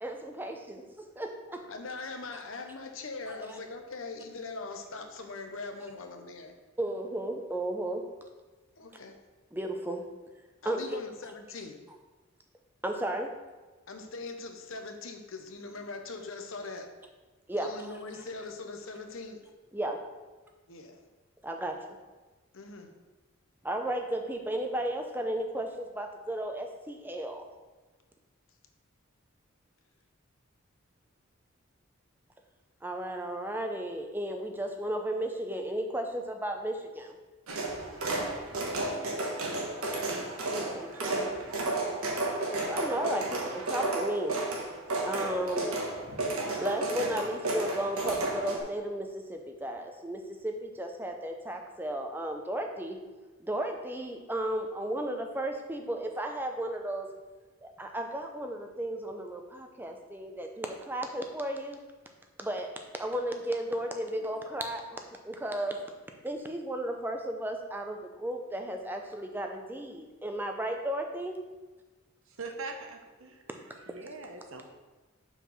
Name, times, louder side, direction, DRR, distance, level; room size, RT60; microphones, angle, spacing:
voice 1, 0.0-1.6 6.8-8.0 9.5-10.0 10.7-11.0 12.8-13.3 17.5-17.7 19.7-20.0 21.4-21.7 23.6-25.7 26.0-27.4 32.8-37.1 40.5-41.3 42.6-43.4 43.7-44.4 45.1-45.7 46.6-53.0 53.4-57.1 57.6-61.8 62.4-62.7 63.0-65.0 65.3-65.8 66.2-71.4, right 1 dB, 10° right, 4 dB, 0.6 m, -34 dB
voice 2, 1.7-6.5 8.8-9.2 10.6-11.8 13.9-16.9 17.6-19.4 20.7-21.0 22.5-22.9 37.9-38.3, left 3 dB, 70° left, 5 dB, 0.8 m, -41 dB
sound 1, 37.5-48.6, right 2 dB, 90° right, 1.3 m, -32 dB
voice 3, 72.3-74.6, right 3 dB, 70° right, 3 dB, 0.9 m, -43 dB
5.7 x 4.6 x 5.5 m, 1.2 s
head